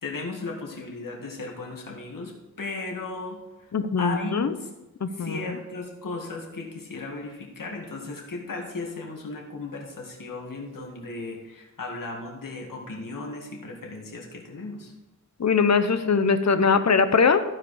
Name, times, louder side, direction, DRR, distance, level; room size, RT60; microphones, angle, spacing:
voice 1, 0.0-3.7 4.0-4.7 5.2-14.9, left 3 dB, 90° left, 0 dB, 2.0 m, -36 dB
voice 2, 3.7-4.5 5.0-5.4 15.4-17.4, left 5 dB, 55° left, 10 dB, 0.8 m, -21 dB
14.5 x 4.9 x 4.9 m, 1.0 s
wide cardioid pair, 80°, 32 cm